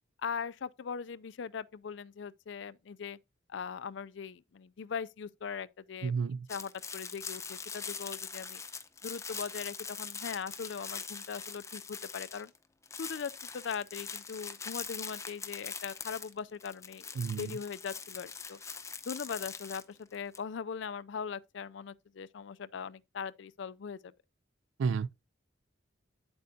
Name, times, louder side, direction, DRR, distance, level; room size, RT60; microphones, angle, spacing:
voice 1, 0.2-3.2 3.5-6.1 6.5-8.6 9.0-12.5 13.0-18.6 19.1-24.1, left 6 dB, 65° left, 0.4 m, -40 dB
voice 2, 6.0-6.5 17.2-17.6 24.8-25.1, right 5 dB, 75° right, 0.3 m, -31 dB
sound 1, 6.5-12.6 12.8-20.4, left 5 dB, 15° left, 0.6 m, -42 dB
9.4 x 7.9 x 2.7 m
head